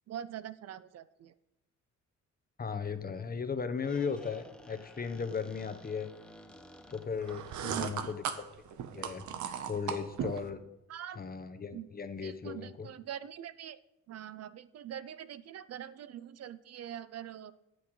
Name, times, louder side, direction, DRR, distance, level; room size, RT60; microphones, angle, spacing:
voice 1, 0.1-1.3 7.6-8.1 10.9-11.2 11.7-11.9 12.2-13.8 14.1-17.5, right 10 dB, 55° right, 15 dB, 0.6 m, -43 dB
voice 2, 2.6-6.1 6.9-8.4 8.9-9.3 9.7-10.6 11.2-12.9, left 5 dB, 30° left, 9 dB, 1.0 m, -36 dB
Squeak, 3.7-8.2, equal, 5° left, 1.0 m, -55 dB
sound 1, 7.2-10.5, right 8 dB, 75° right, 1.0 m, -37 dB
23.0 x 7.9 x 3.2 m, 0.94 s
cardioid pair, 90°, 30 cm